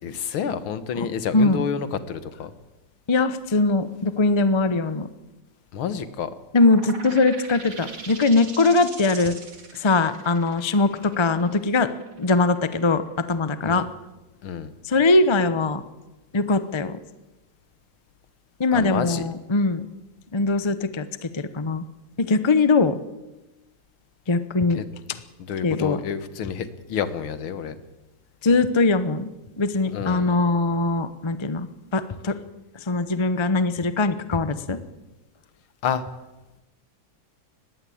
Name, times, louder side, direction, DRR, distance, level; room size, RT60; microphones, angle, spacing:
voice 1, 0.0-2.5 5.7-6.3 13.6-13.9 14.4-14.7 18.7-19.2 24.7-24.9 25.5-27.7 29.9-30.3 35.8-36.0, left 7 dB, 80° left, 12 dB, 2.1 m, -29 dB
voice 2, 3.1-5.1 6.5-9.3 9.8-11.9 12.2-13.0 13.3-13.8 14.8-15.8 16.3-17.0 18.6-19.9 20.3-21.8 22.2-23.0 24.3-24.8 25.6-26.0 28.4-29.3 29.6-31.7 31.9-32.4 32.9-34.8, left 3 dB, 40° left, 12 dB, 0.3 m, -21 dB
sound 1, 6.6-13.9, right 4 dB, 75° right, 3.5 m, -41 dB
20.5 x 16.0 x 8.6 m, 1.0 s
omnidirectional pair, 2.3 m